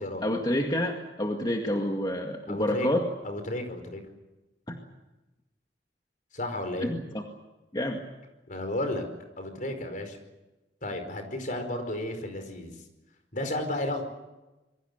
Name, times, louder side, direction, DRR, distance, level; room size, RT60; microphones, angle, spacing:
voice 1, 0.2-3.1 4.7-4.8 6.8-7.2 7.7-8.0, left 1 dB, 25° left, 2 dB, 2.1 m, -28 dB
voice 2, 2.5-2.9 3.2-4.0 6.3-6.9 8.5-9.0 9.4-10.2 10.8-12.7 13.3-14.0, left 1 dB, 50° left, 6 dB, 4.9 m, -33 dB
27.0 x 22.5 x 6.8 m, 1.1 s
head